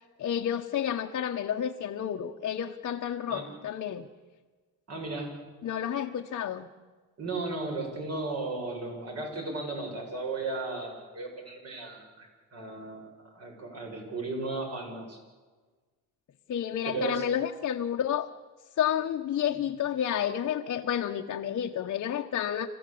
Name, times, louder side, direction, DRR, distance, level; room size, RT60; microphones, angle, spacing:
voice 1, 0.2-4.1 5.6-6.7 16.5-18.3 18.8-22.7, left 9 dB, 45° left, 1 dB, 1.2 m, -30 dB
voice 2, 4.9-5.4 7.2-12.3 12.5-15.2 16.9-17.2, right 3 dB, 45° right, 1 dB, 7.4 m, -35 dB
27.5 x 15.0 x 8.6 m, 1.4 s
cardioid pair, 120°, 35 cm